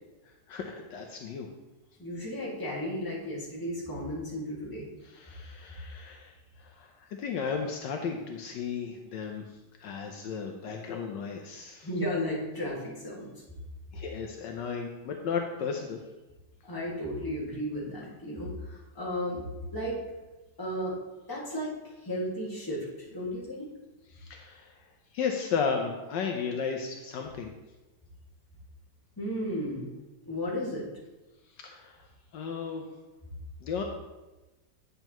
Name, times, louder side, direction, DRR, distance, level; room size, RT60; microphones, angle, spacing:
voice 1, 0.2-1.5 5.0-9.4 9.8-11.9 13.9-16.0 24.1-24.9 25.1-27.5 31.5-32.1 32.3-32.9 33.6-33.8, left 6 dB, 75° left, 3 dB, 1.3 m, -34 dB
voice 2, 2.0-4.9 11.8-13.3 16.6-19.4 19.7-20.0 20.6-21.0 21.3-22.8 23.1-23.7 29.2-29.9 30.3-30.8, equal, 10° left, -6 dB, 1.8 m, -34 dB
9.0 x 6.7 x 3.0 m, 1.1 s
omnidirectional pair, 2.0 m